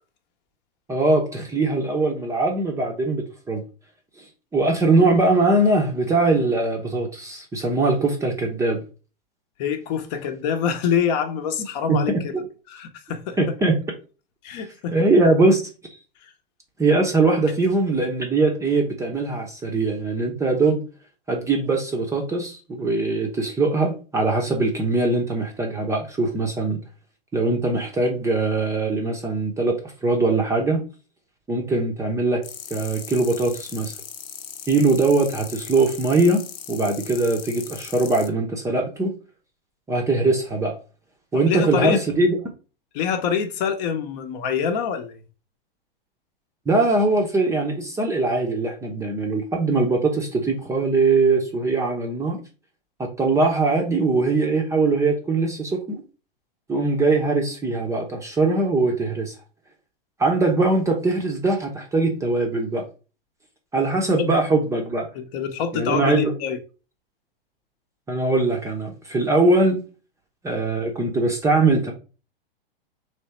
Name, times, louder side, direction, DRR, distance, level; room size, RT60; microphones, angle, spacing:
voice 1, 0.9-3.6 4.5-8.8 11.9-12.2 13.4-13.8 14.9-15.6 16.8-20.8 21.3-26.8 27.3-29.8 30.0-30.8 31.5-32.4 32.7-33.9 34.7-39.1 39.9-40.8 41.3-42.4 46.7-52.4 53.0-56.0 56.7-59.3 60.2-62.8 63.7-65.1 65.7-66.3 68.1-69.8 70.4-71.9, right 3 dB, 10° right, 0.7 m, -21 dB
voice 2, 9.6-12.3 12.7-13.4 14.4-15.0 41.3-42.0 42.9-45.2 65.1-66.6, left 7 dB, 45° left, 0.8 m, -25 dB
sound 1, 32.4-38.3, left 8 dB, 70° left, 0.8 m, -38 dB
3.5 x 3.1 x 4.3 m
hypercardioid pair, 125°, 29 cm